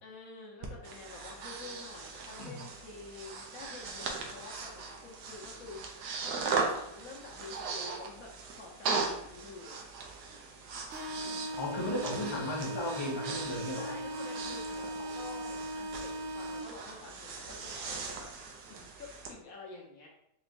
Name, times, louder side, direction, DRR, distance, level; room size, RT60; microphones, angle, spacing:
voice 1, 0.0-9.8 11.1-12.3 13.6-20.1, left 3 dB, 65° left, -2 dB, 1.3 m, -49 dB
Breathing, 0.6-19.3, right 4 dB, 85° right, 1.2 m, -39 dB
sound 1, 10.9-16.9, right 1 dB, 60° right, 0.9 m, -39 dB
voice 2, 11.6-14.0, left 1 dB, 30° left, -3 dB, 0.5 m, -36 dB
4.2 x 3.1 x 2.6 m, 0.79 s
omnidirectional pair, 1.7 m